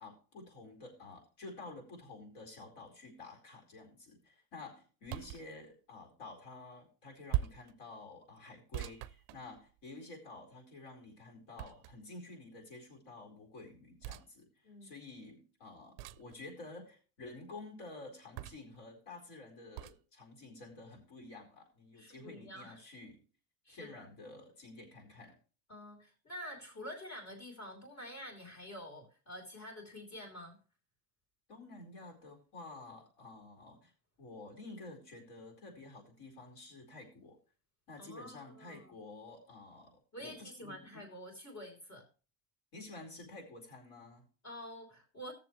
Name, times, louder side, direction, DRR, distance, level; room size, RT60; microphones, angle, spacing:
voice 1, 0.0-23.3 23.7-25.4 31.5-33.9 34.2-37.4 37.9-41.0 42.7-44.3, left 2 dB, 65° left, 4.6 m, -51 dB
sound 1, 5.0-5.5 7.3-7.7 8.7-9.9 11.6-12.2 14.0-14.3 16.0-16.3 18.4-18.8 19.8-20.0, right 15 dB, 55° right, 0.5 m, -40 dB
voice 2, 21.9-22.8 23.6-24.1 25.7-30.6 38.0-38.9 40.1-42.1 44.4-45.3, equal, 40° left, 3.1 m, -48 dB
18.5 x 7.0 x 3.2 m
cardioid pair, 170°, 45 cm